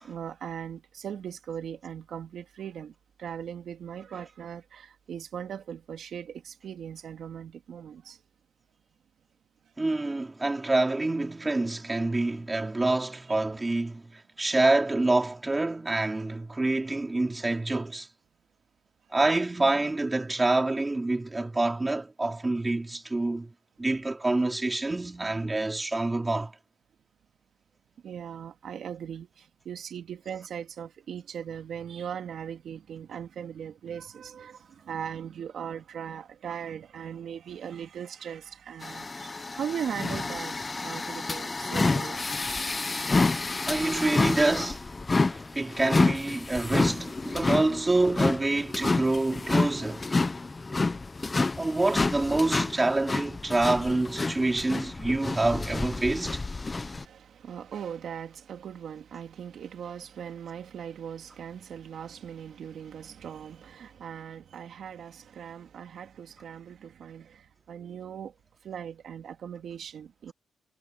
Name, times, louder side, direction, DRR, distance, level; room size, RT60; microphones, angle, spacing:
voice 1, 0.0-8.2 28.0-42.2 42.5-43.0 56.6-68.3 68.6-70.3, right 8 dB, 60° right, 2.5 m, -39 dB
voice 2, 9.8-14.0 14.4-18.1 19.1-23.5 23.8-26.5 43.7-44.9 45.3-50.0 51.6-56.4, right 2 dB, 15° right, 4.1 m, -27 dB
sound 1, 38.8-57.0, left 3 dB, 20° left, 0.7 m, -29 dB
wide cardioid pair, 155°, 0 cm